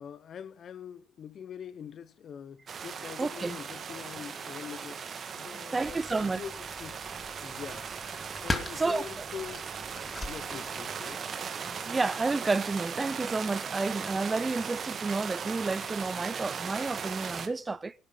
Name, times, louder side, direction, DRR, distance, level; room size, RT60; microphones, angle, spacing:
voice 1, 0.0-5.0 5.4-7.0 7.4-7.9 8.4-9.7 10.3-11.2, left 8 dB, 50° left, 1.0 m, -43 dB
sound 1, 2.7-17.5, right 6 dB, 45° right, 1.9 m, -38 dB
voice 2, 3.2-3.6 5.7-6.4 8.8-9.1 11.7-17.9, right 3 dB, 20° right, 0.6 m, -30 dB
sound 2, 5.8-11.2, left 2 dB, 25° left, 2.4 m, -40 dB
18.0 x 11.0 x 5.7 m
supercardioid pair, 80°, 0 cm